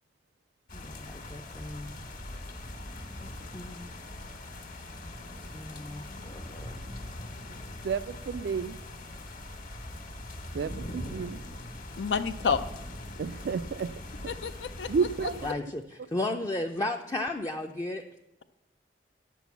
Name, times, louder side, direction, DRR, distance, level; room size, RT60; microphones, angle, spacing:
sound 1, 0.7-15.5, left 1 dB, 50° left, 1.5 m, -41 dB
voice 1, 0.7-1.9 2.5-2.7 3.2-4.0 5.5-6.8 15.4-18.0, left 2 dB, 20° left, 3 dB, 0.4 m, -35 dB
voice 2, 7.8-8.8 10.5-11.4 13.2-13.9 14.9-15.5, right 5 dB, 65° right, 16 dB, 0.3 m, -31 dB
voice 3, 12.0-12.6 14.3-14.9 15.2-15.3, left 6 dB, 80° left, 8 dB, 0.5 m, -29 dB
10.5 x 6.1 x 7.0 m, 0.92 s
head